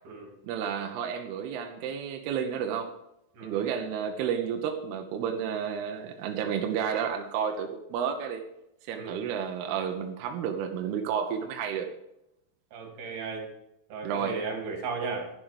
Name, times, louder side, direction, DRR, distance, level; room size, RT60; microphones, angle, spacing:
voice 1, 0.4-2.9 3.4-8.5 8.9-11.9 14.0-14.4, right 7 dB, 75° right, 4 dB, 2.4 m, -31 dB
voice 2, 3.3-3.7 8.9-9.2 12.7-13.4 13.9-15.3, right 4 dB, 55° right, 2 dB, 4.4 m, -35 dB
11.5 x 10.5 x 5.1 m, 0.84 s
omnidirectional pair, 5.8 m